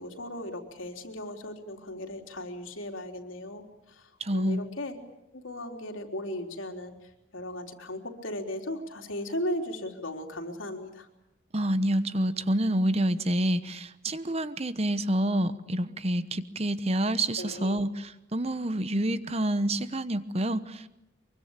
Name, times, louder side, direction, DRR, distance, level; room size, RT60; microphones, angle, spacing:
voice 1, 0.0-5.0 5.3-11.1 17.4-17.8, left 1 dB, 90° left, 3 dB, 3.7 m, -37 dB
voice 2, 4.2-4.6 11.5-20.9, right 1 dB, 30° right, 13 dB, 1.0 m, -28 dB
24.0 x 23.5 x 8.9 m, 0.88 s
head